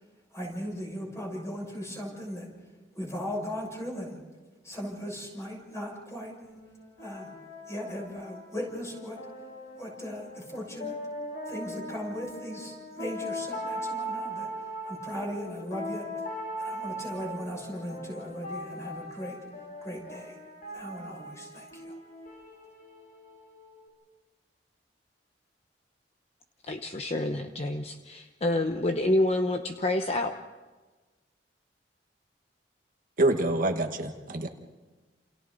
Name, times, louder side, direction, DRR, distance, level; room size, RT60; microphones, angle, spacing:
voice 1, 0.3-2.5 2.9-4.2 4.6-6.3 7.0-7.3 7.7-9.3 9.7-11.0 11.4-16.3 16.6-19.5 19.8-20.4 20.7-22.0, equal, 15° left, -1 dB, 6.4 m, -38 dB
sound 1, 6.4-23.9, equal, 55° left, 7.2 m, -40 dB
voice 2, 26.7-30.4, left 1 dB, 35° left, 5 dB, 0.9 m, -28 dB
voice 3, 33.2-34.5, right 2 dB, 50° right, 5 dB, 1.4 m, -26 dB
29.0 x 28.5 x 4.0 m, 1.3 s
head